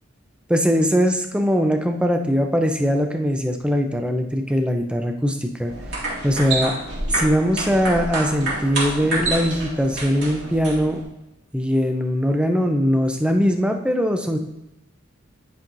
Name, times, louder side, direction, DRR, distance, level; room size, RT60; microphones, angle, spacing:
voice 1, 0.5-5.7 6.2-6.8 7.1-11.0 11.5-14.4, equal, 5° right, 4 dB, 0.5 m, -21 dB
sound 1, 5.7-11.0, right 2 dB, 55° right, 2.3 m, -28 dB
10.0 x 5.5 x 2.6 m, 0.93 s
head